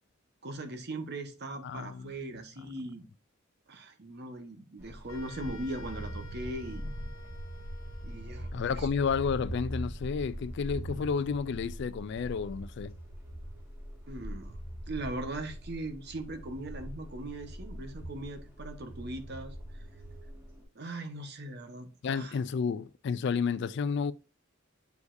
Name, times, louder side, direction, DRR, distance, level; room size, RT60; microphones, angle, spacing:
voice 1, 0.4-3.1 3.7-6.8 8.0-8.9 14.1-14.6 14.9-19.8 20.7-22.4, right 1 dB, 55° right, 1.0 m, -40 dB
voice 2, 1.6-2.2 8.5-12.9 22.0-24.1, left 5 dB, 55° left, 0.3 m, -31 dB
sound 1, 4.8-20.6, equal, 15° right, 1.9 m, -42 dB
sound 2, 5.1-8.7, left 2 dB, 85° left, 1.0 m, -52 dB
8.0 x 4.8 x 2.6 m
head